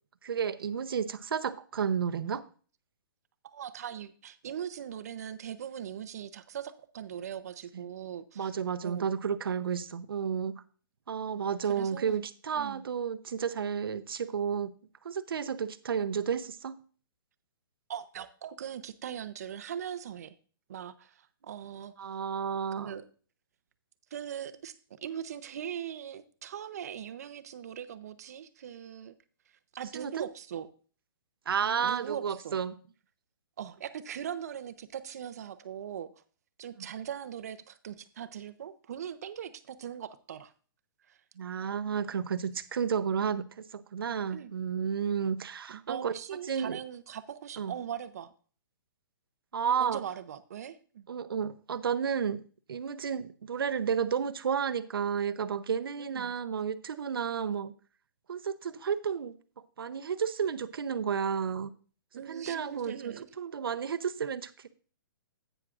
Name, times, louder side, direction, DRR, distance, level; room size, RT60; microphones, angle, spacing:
voice 1, 0.2-2.4 7.7-7.8 8.4-10.6 11.1-14.7 15.0-16.8 22.0-23.0 29.9-30.3 31.5-32.7 36.8-36.9 41.4-46.1 46.5-46.8 47.6-47.8 49.5-50.0 51.1-52.4 52.7-57.7 58.3-59.3 59.8-61.7 62.3-64.7, right 7 dB, 90° right, 12 dB, 0.7 m, -32 dB
voice 2, 3.4-8.6 8.8-9.1 11.7-12.3 12.6-12.8 17.9-20.3 20.7-22.2 22.7-23.0 24.1-24.7 25.0-29.1 29.7-30.7 31.8-32.6 33.6-36.1 36.6-40.5 41.1-41.2 44.3-44.6 45.7-48.3 49.8-51.1 56.0-56.3 62.1-63.3, right 9 dB, 45° right, 13 dB, 0.7 m, -40 dB
11.0 x 9.0 x 2.5 m, 0.40 s
hypercardioid pair, 175°, 12 cm